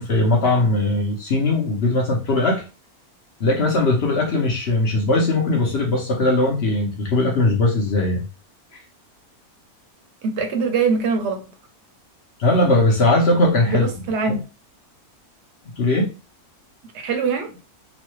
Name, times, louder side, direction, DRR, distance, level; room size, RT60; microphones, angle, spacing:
voice 1, 0.0-2.6 3.4-8.2 8.7-8.8 12.4-13.9 14.3-14.4 15.8-16.1, left 2 dB, 50° left, 0.9 m, -19 dB
voice 2, 10.2-11.4 13.7-14.4 17.0-17.5, right 5 dB, 60° right, 0.8 m, -22 dB
3.1 x 2.2 x 3.0 m
omnidirectional pair, 1.6 m